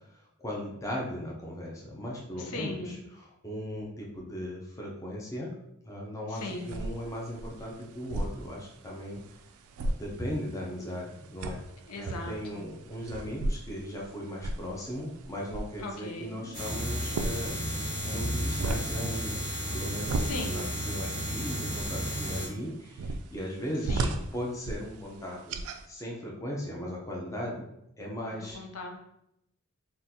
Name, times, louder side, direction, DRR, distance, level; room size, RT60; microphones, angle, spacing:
voice 1, 0.4-5.5 5.9-9.2 10.0-11.6 12.0-17.6 18.0-19.4 19.7-25.6 25.9-27.6 28.0-28.6, equal, 15° left, -3 dB, 0.5 m, -37 dB
voice 2, 2.4-3.0 6.3-6.8 11.9-12.6 15.8-16.5 20.2-20.7 23.9-24.2 28.5-29.0, left 2 dB, 85° left, 1 dB, 0.6 m, -38 dB
sound 1, 6.3-25.8, right 2 dB, 80° right, 0.3 m, -38 dB
sound 2, 16.5-22.5, equal, 55° left, 1.5 m, -33 dB
3.7 x 2.4 x 2.8 m, 0.80 s
head